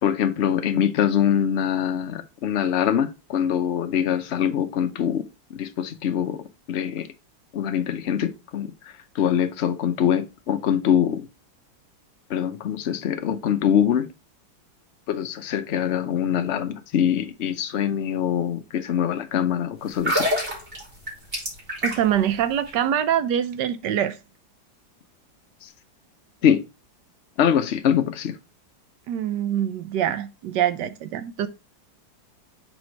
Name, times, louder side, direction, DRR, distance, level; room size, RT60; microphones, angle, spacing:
voice 1, 0.0-5.2 5.5-7.1 7.5-8.7 9.1-11.3 12.3-14.1 15.1-20.3 25.6-25.7 26.4-26.6 27.4-28.4, left 9 dB, 70° left, 0.6 m, -23 dB
sound 1, 19.9-22.2 22.5-22.7, equal, 30° right, 2.7 m, -26 dB
voice 2, 21.8-24.2 29.1-31.5, right 10 dB, 70° right, 1.1 m, -24 dB
4.7 x 4.3 x 5.1 m
omnidirectional pair, 2.1 m